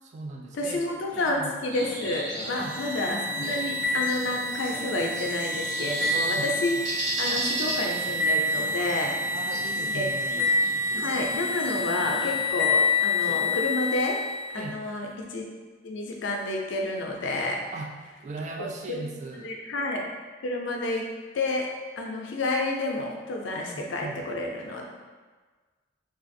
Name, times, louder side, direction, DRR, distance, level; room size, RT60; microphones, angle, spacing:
voice 1, 0.0-0.9 1.2-1.5 2.6-2.8 3.1-3.5 6.3-6.5 9.3-10.5 14.5-14.8 17.7-19.6 23.7-24.2, right 3 dB, 40° right, 2 dB, 0.3 m, -39 dB
voice 2, 0.6-9.1 9.9-10.1 10.4-10.5 11.0-14.2 14.5-15.5 15.8-17.6 18.6-19.1 19.4-20.0 20.4-21.0 21.3-21.7 22.0-24.8, left 2 dB, 75° left, 0 dB, 0.5 m, -30 dB
Speech synthesizer, 1.1-1.4 2.2-2.7 3.4-3.7 4.6-5.1 6.0-6.4 7.3-7.6 8.5-8.8 9.8-10.0 10.9-11.1 12.0-12.4 13.2-13.6, left 1 dB, 30° left, 0.5 m, -44 dB
sound 1, 1.7-12.5, right 1 dB, 70° right, 0.9 m, -37 dB
sound 2, 2.4-14.5, left 2 dB, 10° right, 0.8 m, -28 dB
3.3 x 2.4 x 2.6 m, 1.4 s
head